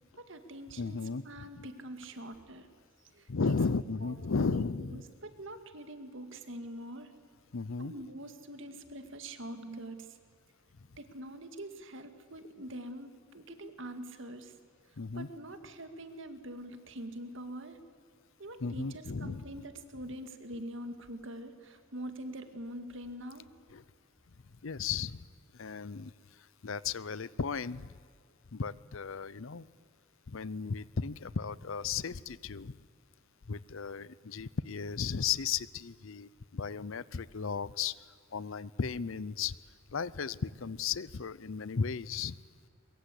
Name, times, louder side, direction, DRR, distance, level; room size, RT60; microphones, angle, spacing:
voice 1, 0.2-2.7 3.1-3.5 4.0-4.1 4.4-4.6 4.9-7.1 7.8-10.1 11.0-14.5 15.2-17.8 18.4-23.5, right 1 dB, 65° right, 8 dB, 2.0 m, -44 dB
voice 2, 0.8-1.7 3.3-5.0 7.5-7.9 15.0-15.3 18.6-19.6 23.7-23.8 24.6-25.3 25.5-26.1 26.6-27.9 28.5-29.7 30.3-32.7 33.5-37.9 38.3-39.6 39.9-42.4, left 5 dB, 70° left, 20 dB, 0.7 m, -35 dB
23.0 x 23.0 x 8.4 m, 2.1 s
head